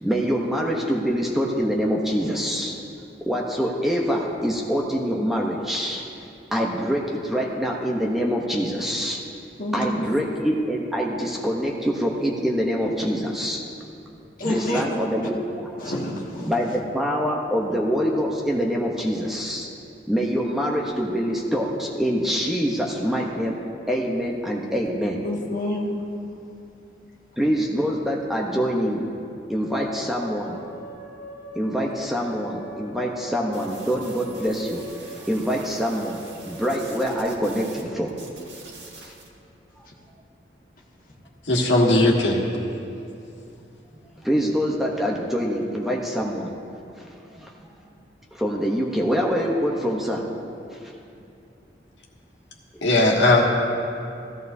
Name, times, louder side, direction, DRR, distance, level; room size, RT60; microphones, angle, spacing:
voice 1, 0.0-2.8 3.2-9.2 9.7-13.6 14.4-15.7 16.4-19.7 20.1-23.6 23.9-25.2 27.4-29.0 29.5-30.6 31.5-34.8 35.1-38.1 39.0-39.1 44.2-46.5 47.0-47.5 48.3-50.2 50.7-50.8 52.7-52.8, equal, ahead, -2 dB, 0.8 m, -25 dB
voice 2, 9.6-10.1 14.4-14.8 15.8-16.7 25.2-25.9, left 1 dB, 50° left, -4 dB, 1.8 m, -28 dB
sound 1, 29.7-38.6, right 1 dB, 20° left, 2.7 m, -43 dB
sound 2, 33.5-37.8 38.1-39.3, right 3 dB, 80° right, 2.0 m, -45 dB
voice 3, 41.4-42.6 52.8-53.5, left 1 dB, 85° left, -2 dB, 1.6 m, -18 dB
16.0 x 14.0 x 2.7 m, 2.6 s
head